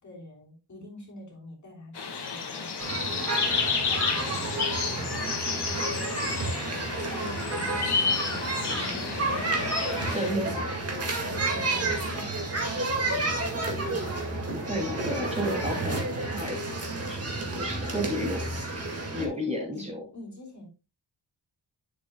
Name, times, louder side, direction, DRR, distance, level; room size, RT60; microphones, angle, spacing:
voice 1, 0.0-3.5 3.9-9.0 11.3-13.4 19.1-19.3 19.7-20.7, left 1 dB, 40° left, -2 dB, 3.3 m, -47 dB
sound 1, 1.9-10.3, left 5 dB, 65° left, 1.8 m, -31 dB
sound 2, 2.8-19.2, right 2 dB, 35° right, 2.0 m, -31 dB
voice 2, 9.6-10.8 14.5-16.6 17.1-18.5 19.1-20.0, equal, 15° right, -1 dB, 2.7 m, -32 dB
10.0 x 7.5 x 2.3 m, 0.29 s
wide cardioid pair, 180°, 43 cm